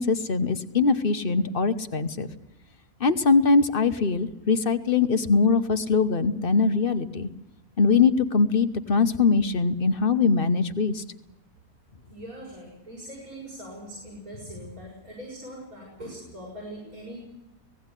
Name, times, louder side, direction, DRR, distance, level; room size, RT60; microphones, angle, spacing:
voice 1, 0.0-2.3 3.0-7.3 7.8-11.0, left 4 dB, 40° left, 11 dB, 1.2 m, -22 dB
voice 2, 12.1-17.2, right 1 dB, 80° right, -3 dB, 7.3 m, -41 dB
18.5 x 16.5 x 9.9 m, 0.96 s
omnidirectional pair, 1.5 m